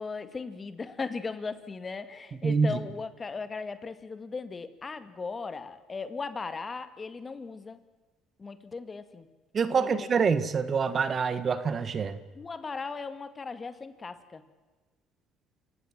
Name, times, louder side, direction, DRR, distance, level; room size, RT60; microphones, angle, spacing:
voice 1, 0.0-7.8 8.4-9.3 9.7-10.1 12.4-14.4, left 4 dB, 30° left, 11 dB, 2.1 m, -37 dB
voice 2, 2.4-2.8 9.5-12.2, right 5 dB, 40° right, 13 dB, 1.7 m, -26 dB
28.5 x 16.5 x 7.5 m, 1.3 s
supercardioid pair, 80°, 0 cm